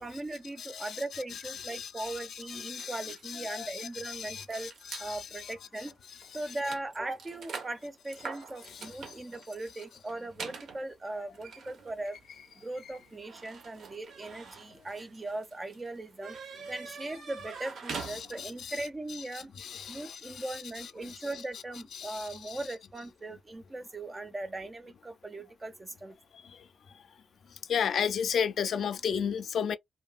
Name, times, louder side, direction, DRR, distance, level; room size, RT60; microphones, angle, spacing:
voice 1, 0.0-4.7 5.0-6.0 6.3-12.2 12.6-16.4 16.7-19.5 19.9-26.2, right 2 dB, 15° right, 0.4 m, -39 dB
voice 2, 0.6-6.6 8.6-9.1 9.7-9.8 11.1-11.2 12.8-13.0 17.9-21.6 21.9-22.7 27.7-29.8, left 7 dB, 60° left, 0.3 m, -36 dB
sound 1, 2.8-5.1 5.8-5.9 6.2-18.7, right 5 dB, 65° right, 0.7 m, -45 dB
2.6 x 2.6 x 2.3 m
wide cardioid pair, 180°, 0 cm